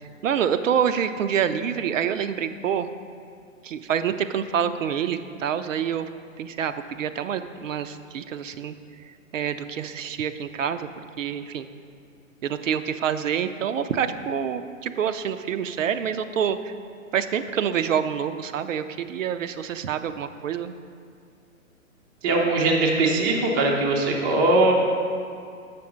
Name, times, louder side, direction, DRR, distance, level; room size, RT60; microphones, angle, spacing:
voice 1, 0.2-2.9 3.6-6.1 6.4-8.8 9.3-10.9 11.2-11.7 12.4-16.7 17.1-20.7, right 8 dB, 65° right, 10 dB, 0.6 m, -27 dB
voice 2, 22.2-24.7, right 2 dB, 15° right, -1 dB, 0.4 m, -21 dB
6.9 x 6.0 x 5.0 m, 2.2 s
hypercardioid pair, 130°, 41 cm